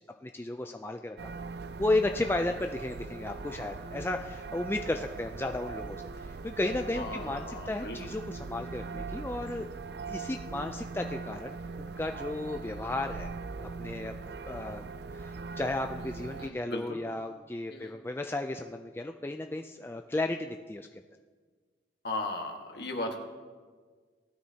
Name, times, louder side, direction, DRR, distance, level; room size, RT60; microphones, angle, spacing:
voice 1, 0.2-1.2 1.8-9.7 10.1-13.3 13.6-14.2 14.4-14.9 15.1-20.9, left 2 dB, 10° left, 4 dB, 0.3 m, -34 dB
sound 1, 1.2-16.5, right 4 dB, 60° right, 0.4 m, -41 dB
voice 2, 6.9-8.0 16.4-17.0 17.7-18.0 22.0-23.2, left 2 dB, 60° left, 2 dB, 1.5 m, -36 dB
19.0 x 12.5 x 2.8 m, 1.5 s
head